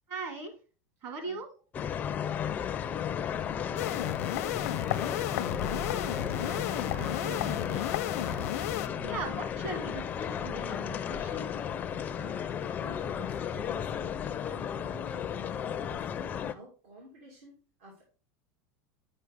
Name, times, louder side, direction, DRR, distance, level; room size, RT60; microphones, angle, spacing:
voice 1, 0.1-0.5 1.0-1.5 5.8-7.9 8.2-8.5 9.1-11.5, right 3 dB, 40° right, 7 dB, 1.7 m, -40 dB
sound 1, 1.7-16.5, left 8 dB, 20° left, 0.4 m, -34 dB
voice 2, 2.0-5.3 9.0-9.3 12.2-16.1 16.5-18.0, right 1 dB, 75° right, -2 dB, 2.5 m, -51 dB
sound 2, 3.8-8.9, left 13 dB, 85° left, 0.6 m, -33 dB
sound 3, 5.5-13.0, right 3 dB, 60° right, 0.6 m, -49 dB
7.9 x 5.3 x 3.5 m, 0.36 s
supercardioid pair, 160°, 8 cm